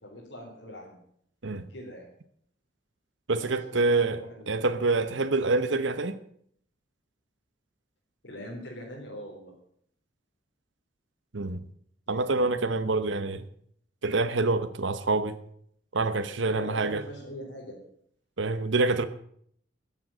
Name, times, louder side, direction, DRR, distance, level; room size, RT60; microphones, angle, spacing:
voice 1, 0.0-1.0 1.7-2.1 3.4-4.7 8.2-9.5 12.1-12.5 16.4-17.8, equal, 85° left, 3.8 m, -42 dB
voice 2, 3.3-6.2 11.3-11.6 12.1-13.4 14.0-15.4 15.9-17.0 18.4-19.0, right 3 dB, 85° right, 0.9 m, -26 dB
14.0 x 7.6 x 8.7 m
head